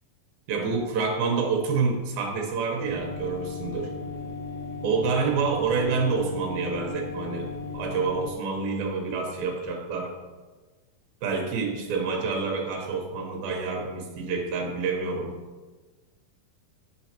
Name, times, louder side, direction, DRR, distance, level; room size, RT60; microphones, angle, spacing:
voice 1, 0.5-3.9 4.8-10.1 11.2-15.4, right 4 dB, 90° right, 2 dB, 2.8 m, -28 dB
sound 1, 2.8-8.3, left 3 dB, 70° right, 2.0 m, -36 dB
9.8 x 5.9 x 2.9 m, 1.3 s
omnidirectional pair, 4.1 m